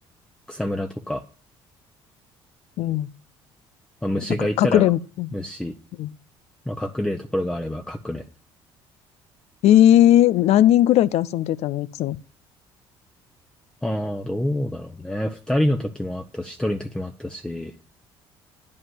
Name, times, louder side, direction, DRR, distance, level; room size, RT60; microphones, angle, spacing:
voice 1, 0.5-1.2 4.0-4.9 5.3-5.7 6.7-8.2 13.8-17.7, left 1 dB, 5° left, 0.9 m, -27 dB
voice 2, 2.8-3.1 4.6-5.3 6.0-6.1 9.6-12.2, left 12 dB, 65° left, 0.5 m, -17 dB
9.6 x 5.4 x 7.7 m
supercardioid pair, 65°, 12 cm